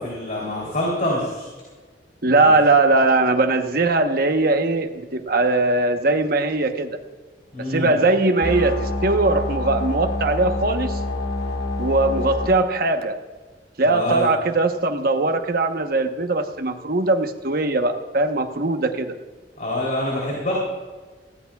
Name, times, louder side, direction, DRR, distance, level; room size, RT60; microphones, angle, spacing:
voice 1, 0.0-1.5 2.4-2.5 7.5-7.9 13.9-14.3 19.6-20.5, left 1 dB, 50° left, -4 dB, 3.4 m, -25 dB
voice 2, 2.2-7.0 7.6-11.0 11.8-13.2 13.8-19.2, right 2 dB, 60° right, 5 dB, 1.1 m, -20 dB
sound 1, 8.4-12.5, left 2 dB, 65° left, 1.7 m, -26 dB
19.0 x 15.5 x 2.4 m, 1.3 s
head